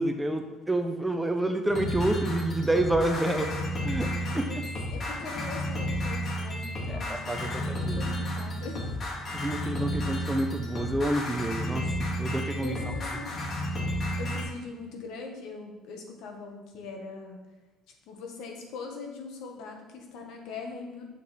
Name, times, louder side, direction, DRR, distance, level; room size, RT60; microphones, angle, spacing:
voice 1, 0.0-3.5 3.8-4.5 6.9-7.4 7.9-8.0 9.3-11.8 12.2-12.7, right 1 dB, 10° right, 6 dB, 0.7 m, -28 dB
sound 1, 1.7-14.4, left 1 dB, 45° left, 2.3 m, -32 dB
voice 2, 4.1-9.0 12.3-13.5 14.2-17.4 18.1-21.1, left 4 dB, 75° left, 2 dB, 1.5 m, -41 dB
6.8 x 6.3 x 3.4 m, 1.1 s
cardioid pair, 110°, 0 cm